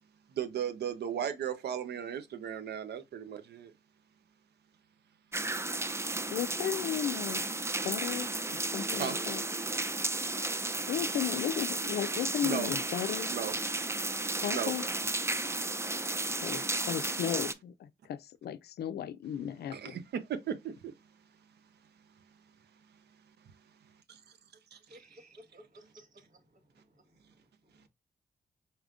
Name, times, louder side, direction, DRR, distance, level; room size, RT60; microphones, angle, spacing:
voice 1, 0.3-3.7 9.0-9.2 12.4-12.7 13.3-13.5 13.9-14.0 14.5-14.7 19.7-20.9 24.1-24.2 24.7-25.0, right 8 dB, 85° right, 0.7 m, -36 dB
sound 1, 5.3-17.5, right 2 dB, 15° right, 0.5 m, -33 dB
voice 2, 6.3-7.4 7.8-8.3 8.7-9.4 10.9-13.3 14.4-14.8 16.4-20.0, left 9 dB, 80° left, 0.4 m, -35 dB
voice 3, 24.9-27.9, equal, 50° right, 1.3 m, -58 dB
4.3 x 3.5 x 2.4 m
cardioid pair, 60°, 17 cm